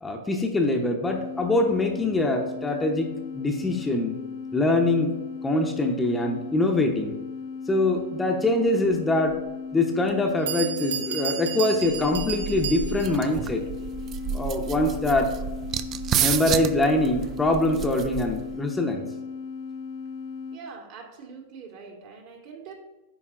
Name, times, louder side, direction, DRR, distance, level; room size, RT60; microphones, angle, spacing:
voice 1, 0.0-3.1 3.3-4.2 4.5-5.1 5.4-7.1 7.7-9.4 9.7-13.6 14.3-15.4 16.2-19.0, left 2 dB, 10° left, 2 dB, 0.8 m, -24 dB
sound 1, 1.0-20.6, left 5 dB, 65° left, 0.9 m, -37 dB
Bell, 9.3-9.4 10.1-10.2 10.5-13.3, right 8 dB, 70° right, 0.8 m, -33 dB
sound 2, 11.9-18.6, right 9 dB, 35° right, 0.3 m, -31 dB
voice 2, 20.5-22.7, right 5 dB, 50° right, 1 dB, 1.6 m, -43 dB
9.5 x 5.0 x 2.5 m, 1.1 s
hypercardioid pair, 100°, 0 cm